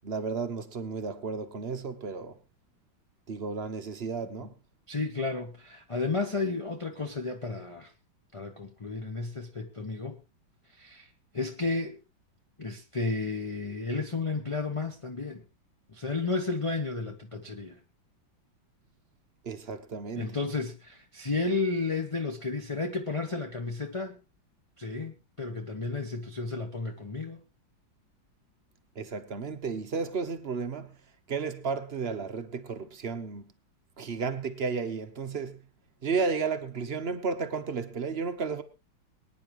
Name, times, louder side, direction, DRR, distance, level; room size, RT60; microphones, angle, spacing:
voice 1, 0.0-2.4 3.3-4.5 19.4-20.3 29.0-30.9 31.3-33.5 34.0-35.6 36.0-38.6, right 5 dB, 40° right, 0.9 m, -33 dB
voice 2, 4.9-7.9 8.3-10.2 10.7-11.1 11.3-12.0 12.6-15.4 15.9-17.8 20.2-24.2 24.8-27.4, left 3 dB, 25° left, 0.7 m, -32 dB
24.0 x 9.7 x 3.0 m
omnidirectional pair, 2.2 m